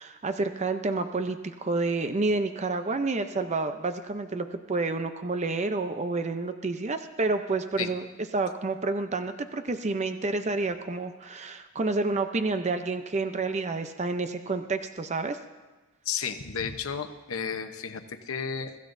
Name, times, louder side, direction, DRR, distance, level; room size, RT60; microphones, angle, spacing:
voice 1, 0.0-8.1 8.3-15.4, right 3 dB, 35° right, 8 dB, 0.6 m, -29 dB
voice 2, 16.0-18.8, left 6 dB, 80° left, 7 dB, 0.9 m, -33 dB
24.0 x 15.0 x 2.6 m, 1.2 s
head